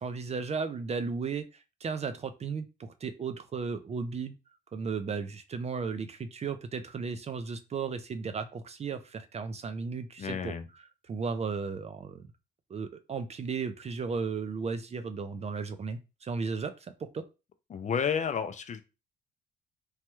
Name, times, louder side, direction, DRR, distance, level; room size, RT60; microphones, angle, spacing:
voice 1, 0.0-4.4 4.7-10.5 11.1-12.3 12.7-17.2, right 5 dB, 35° right, 10 dB, 0.4 m, -35 dB
voice 2, 10.2-10.7 17.7-18.8, left 7 dB, 35° left, 9 dB, 0.4 m, -31 dB
3.1 x 2.2 x 3.0 m, 0.29 s
cardioid pair, 90°, 20 cm